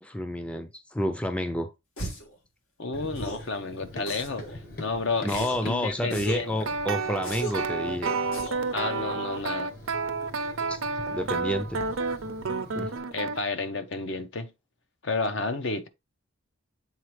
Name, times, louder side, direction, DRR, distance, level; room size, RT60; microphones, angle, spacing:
voice 1, 0.0-1.7 5.2-8.1 10.7-10.8 11.1-11.8 12.8-12.9, equal, 5° left, 0.4 m, -30 dB
sound 1, 2.0-2.3 3.1-3.5 4.1-4.6 5.3-5.7 6.1-6.5 7.2-7.7 8.3-8.7, right 1 dB, 80° left, 1.9 m, -37 dB
voice 2, 2.8-6.5 8.7-9.7 13.1-14.5 15.0-15.9, left 3 dB, 60° left, 0.8 m, -31 dB
Run, 2.9-13.0, left 1 dB, 45° left, 1.2 m, -45 dB
sound 2, 6.4-13.4, right 4 dB, 75° right, 0.6 m, -30 dB
7.5 x 4.1 x 3.1 m
head